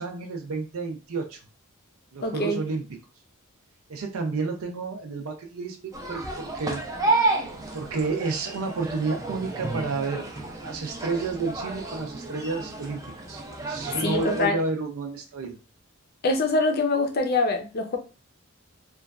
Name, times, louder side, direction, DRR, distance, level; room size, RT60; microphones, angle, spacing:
voice 1, 0.0-1.4 2.1-2.8 3.9-5.8 6.1-6.8 7.7-10.3 10.6-15.6, right 3 dB, 75° right, 3 dB, 0.4 m, -30 dB
voice 2, 2.2-2.6 14.0-14.6 16.2-18.0, left 2 dB, 45° left, 4 dB, 0.5 m, -24 dB
sound 1, 5.9-14.5, right 2 dB, 15° right, 0.4 m, -31 dB
3.0 x 2.3 x 2.2 m, 0.32 s
head